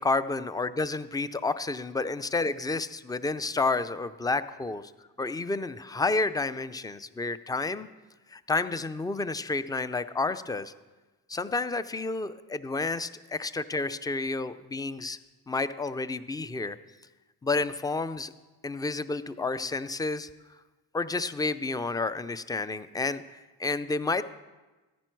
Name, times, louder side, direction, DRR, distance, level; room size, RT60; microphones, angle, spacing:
voice 1, 0.0-4.9 5.2-7.9 8.3-10.7 11.3-15.2 15.5-16.8 17.4-18.3 18.6-20.3 20.9-23.2 23.6-24.3, left 3 dB, 10° left, 14 dB, 0.4 m, -30 dB
14.5 x 10.5 x 4.6 m, 1.2 s
cardioid pair, 110°, 38 cm